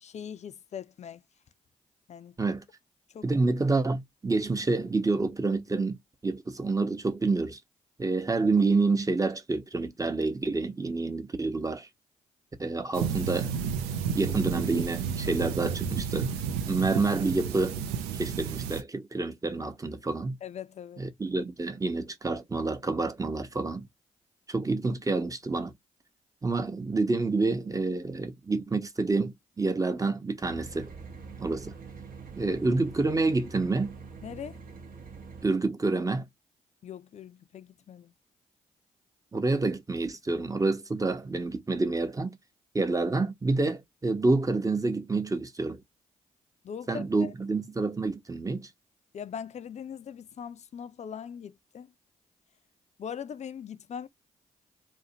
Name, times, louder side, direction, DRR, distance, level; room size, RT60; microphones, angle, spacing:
voice 1, 0.0-1.2 2.1-2.3 3.1-3.2 20.4-21.0 34.2-34.6 36.8-38.1 46.6-47.3 49.1-51.9 53.0-54.1, left 8 dB, 45° left, 0.4 m, -40 dB
voice 2, 3.2-6.0 6.2-7.6 8.0-11.9 12.6-13.5 14.1-16.3 16.7-17.8 18.1-20.4 21.0-23.9 24.5-25.7 26.4-30.9 31.4-31.7 32.4-33.9 35.4-36.3 39.3-42.4 42.7-45.8 46.9-48.7, right 3 dB, 20° right, 0.7 m, -28 dB
sound 1, 12.9-18.8, right 7 dB, 85° right, 0.4 m, -31 dB
sound 2, 30.4-35.5, right 5 dB, 60° right, 0.8 m, -45 dB
2.6 x 2.1 x 2.7 m
hypercardioid pair, 45°, 16 cm